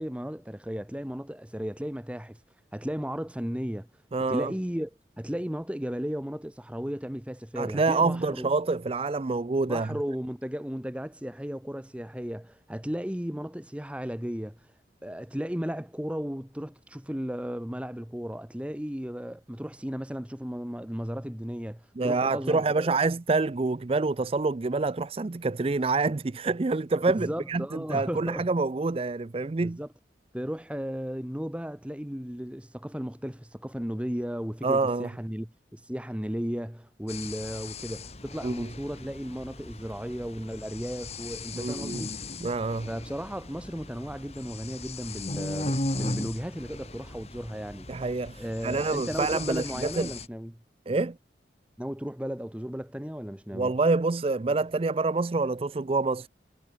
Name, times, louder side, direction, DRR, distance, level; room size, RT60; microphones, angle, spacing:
voice 1, 0.0-2.4 2.7-3.9 4.3-4.9 5.2-8.5 9.7-14.6 15.0-23.0 27.2-28.5 29.6-29.9 30.3-42.1 42.9-47.9 48.4-50.6 51.8-53.7, equal, 5° right, 1.1 m, -35 dB
voice 2, 4.1-4.5 7.6-9.9 22.0-29.8 34.6-35.1 38.4-38.7 41.5-42.0 42.4-42.9 47.9-50.1 50.9-51.2 53.5-56.3, right 3 dB, 30° right, 0.4 m, -27 dB
sound 1, 37.1-50.3, left 2 dB, 35° left, 5.0 m, -37 dB
head